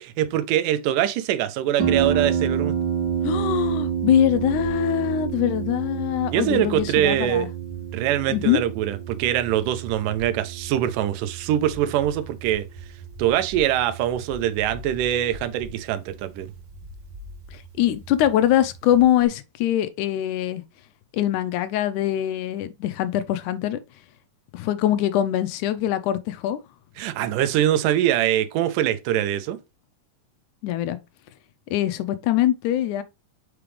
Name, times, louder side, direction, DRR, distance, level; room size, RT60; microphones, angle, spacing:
voice 1, 0.0-2.8 6.3-7.5 7.9-12.7 13.2-16.5 27.0-29.6, right 11 dB, 90° right, 2.3 m, -23 dB
Harp, 1.8-19.3, right 7 dB, 45° right, 1.6 m, -30 dB
voice 2, 3.2-7.5 8.3-8.6 17.5-20.6 21.1-23.8 24.5-26.6 30.6-31.0 31.7-33.0, left 12 dB, 80° left, 2.1 m, -23 dB
5.9 x 5.1 x 3.2 m
omnidirectional pair, 3.7 m